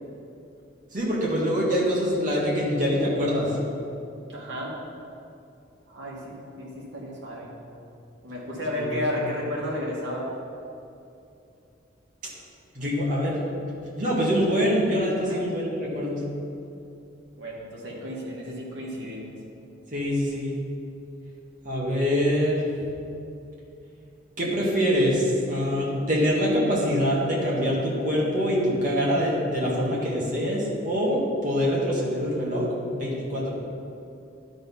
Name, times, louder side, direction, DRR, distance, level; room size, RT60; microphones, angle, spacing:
voice 1, 0.9-3.5 8.8-8.9 9.2-9.3 12.7-13.4 13.8-16.2 19.9-20.5 21.6-22.6 24.4-33.5, equal, 40° right, -5 dB, 2.0 m, -24 dB
voice 2, 4.3-4.8 5.9-7.5 8.2-10.3 15.3-15.4 17.4-19.3, left 1 dB, 70° right, -4 dB, 1.9 m, -32 dB
11.5 x 4.1 x 5.6 m, 2.7 s
head